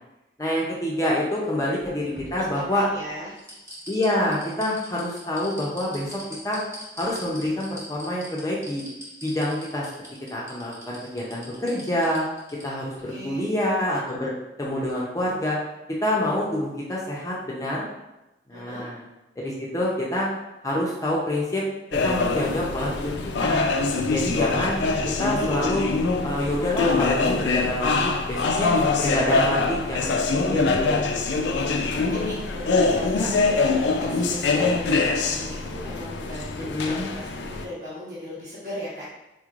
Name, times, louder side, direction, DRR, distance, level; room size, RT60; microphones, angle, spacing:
voice 1, 0.4-2.8 3.9-6.6 7.0-8.8 9.2-9.9 10.3-12.3 12.6-14.3 14.6-15.6 16.0-17.9 18.5-19.0 19.4-20.3 20.6-21.6 22.0-23.1 23.4-23.7 24.1-24.8 25.2-25.9 26.2-30.1 30.4-31.2 36.6-37.1, left 1 dB, 20° left, -4 dB, 0.5 m, -27 dB
sound 1, 1.8-2.9 3.4-12.6 13.0-13.1, equal, 15° right, 0.9 m, -42 dB
voice 2, 2.3-3.3 13.1-13.5 18.5-18.9 31.2-39.1, left 1 dB, 55° right, -10 dB, 1.1 m, -38 dB
sound 2, 21.9-37.7, left 3 dB, 90° left, 0.4 m, -24 dB
4.2 x 3.0 x 2.4 m, 0.97 s
head